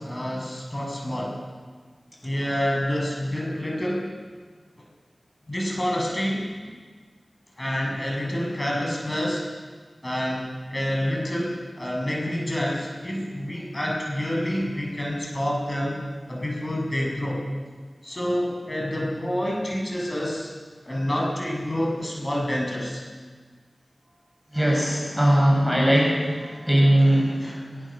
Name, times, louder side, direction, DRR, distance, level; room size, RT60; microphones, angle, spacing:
voice 1, 0.0-1.3 2.2-4.0 5.5-6.4 7.6-9.4 10.0-17.4 18.0-20.5 20.8-23.0 27.4-27.6, equal, 30° left, -2 dB, 7.3 m, -28 dB
voice 2, 24.5-27.5, right 1 dB, ahead, -2 dB, 6.8 m, -20 dB
23.0 x 22.0 x 7.5 m, 1.5 s
wide cardioid pair, 70°, 0 cm